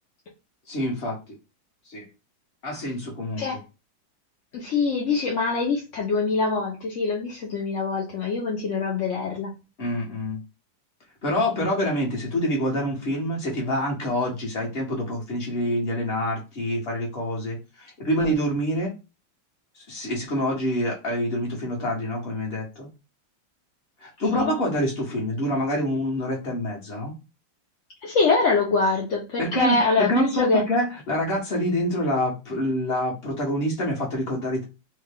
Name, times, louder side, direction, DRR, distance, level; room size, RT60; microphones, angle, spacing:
voice 1, 0.7-1.2 1.9-2.1 2.6-3.4 9.8-10.4 11.2-18.9 19.9-22.9 24.0-27.1 29.4-34.6, equal, 35° left, -1 dB, 1.3 m, -26 dB
voice 2, 4.5-9.5 24.3-24.5 28.0-30.6, left 4 dB, 60° left, -2 dB, 0.8 m, -24 dB
3.2 x 2.3 x 3.4 m, 0.28 s
omnidirectional pair, 2.0 m